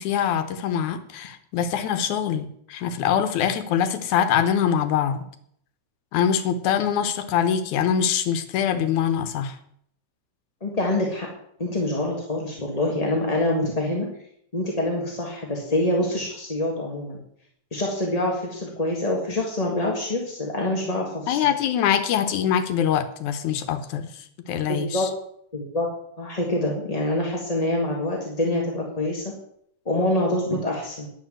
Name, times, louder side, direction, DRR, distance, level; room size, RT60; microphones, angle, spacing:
voice 1, 0.0-5.3 6.1-9.6 21.3-24.1 24.5-25.1, left 8 dB, 85° left, 9 dB, 2.4 m, -24 dB
voice 2, 10.6-11.3 11.6-14.1 14.5-17.2 17.7-21.4 24.7-25.1 25.5-25.9 26.2-29.2 29.8-31.1, left 1 dB, 20° left, -1 dB, 1.1 m, -25 dB
10.0 x 7.3 x 7.6 m, 0.68 s
omnidirectional pair, 3.3 m